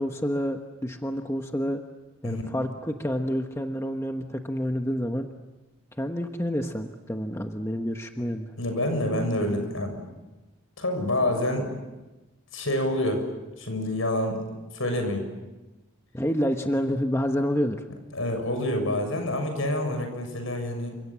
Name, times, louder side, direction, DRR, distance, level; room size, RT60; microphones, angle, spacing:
voice 1, 0.0-1.8 2.2-5.3 6.0-8.5 16.1-17.8, equal, 10° left, 5 dB, 1.1 m, -28 dB
voice 2, 8.6-10.0 10.8-11.8 12.5-13.2 13.6-14.4 14.7-15.2 18.1-21.0, left 1 dB, 70° left, 6 dB, 6.9 m, -27 dB
29.5 x 26.0 x 7.5 m, 1.1 s
head